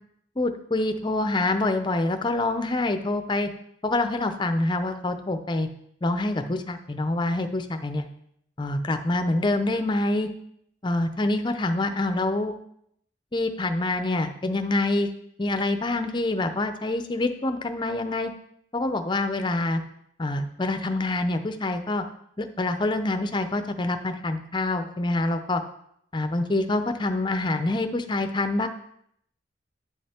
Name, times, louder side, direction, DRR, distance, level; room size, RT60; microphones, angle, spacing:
voice 1, 0.4-3.5 3.8-5.7 6.0-8.1 8.6-10.3 10.8-12.5 13.3-15.1 15.4-18.3 18.7-19.8 20.2-22.0 22.4-25.6 26.1-28.7, left 2 dB, 25° left, 7 dB, 0.6 m, -26 dB
9.8 x 5.3 x 4.3 m, 0.72 s
head